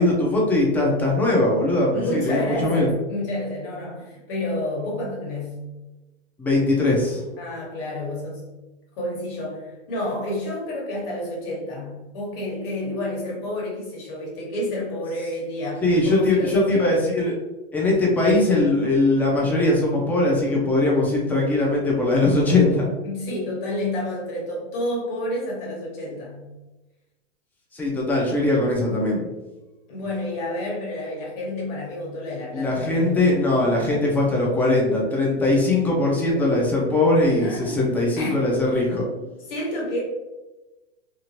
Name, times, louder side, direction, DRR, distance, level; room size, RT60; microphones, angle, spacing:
voice 1, 0.0-2.9 6.4-7.2 15.8-17.4 17.7-22.9 27.7-29.2 32.5-39.1, left 2 dB, 5° left, -3 dB, 0.4 m, -20 dB
voice 2, 1.9-5.6 7.4-8.5 8.9-16.9 23.0-26.5 29.9-33.3 37.4-37.9 38.2-38.3 39.1-39.2 39.5-40.0, left 1 dB, 55° left, -3 dB, 1.5 m, -30 dB
2.9 x 2.4 x 2.8 m, 1.1 s
hypercardioid pair, 140°, 33 cm